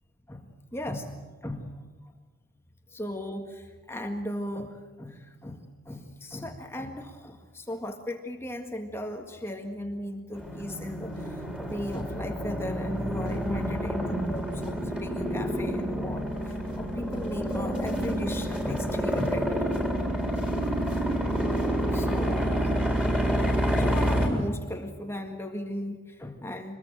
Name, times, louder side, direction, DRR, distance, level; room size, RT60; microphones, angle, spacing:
voice 1, 0.3-1.9 2.9-19.6 21.9-22.7 23.8-26.8, left 1 dB, 10° left, 4 dB, 1.7 m, -36 dB
sound 1, 10.3-24.3, equal, 5° right, 4.0 m, -28 dB
25.5 x 21.5 x 7.6 m, 1.4 s
head